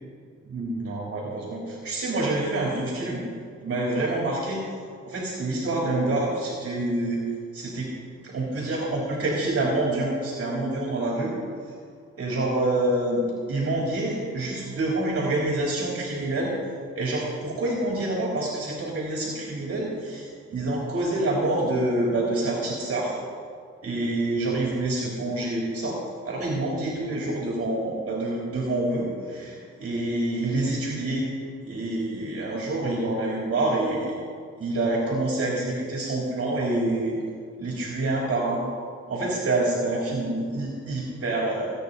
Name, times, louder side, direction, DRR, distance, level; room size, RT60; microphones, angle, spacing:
voice 1, 0.4-3.2 3.6-4.6 5.0-7.2 7.5-7.9 8.2-11.3 12.2-13.2 13.5-16.5 16.9-23.1 23.8-26.0 26.2-31.3 31.6-34.1 34.6-37.1 37.6-38.6 39.1-41.7, right 2 dB, 50° right, -4 dB, 3.4 m, -27 dB
24.0 x 9.5 x 4.1 m, 2.1 s
cardioid pair, 90°, 30 cm